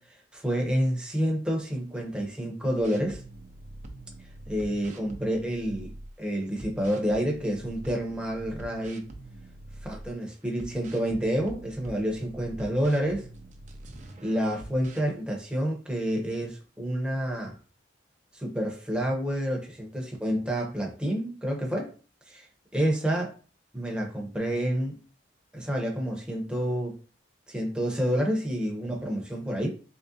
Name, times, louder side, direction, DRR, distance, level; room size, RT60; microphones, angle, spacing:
voice 1, 0.1-3.2 4.5-5.9 6.2-9.1 9.8-13.3 14.2-17.5 18.3-21.9 22.3-22.5 22.7-23.3 23.7-25.0 25.5-27.0 27.5-29.7, equal, 5° right, 0.8 m, -29 dB
sound 1, 2.8-6.1 6.6-10.1 10.6-15.0, right 1 dB, 40° right, 0.6 m, -45 dB
3.7 x 3.1 x 2.7 m
head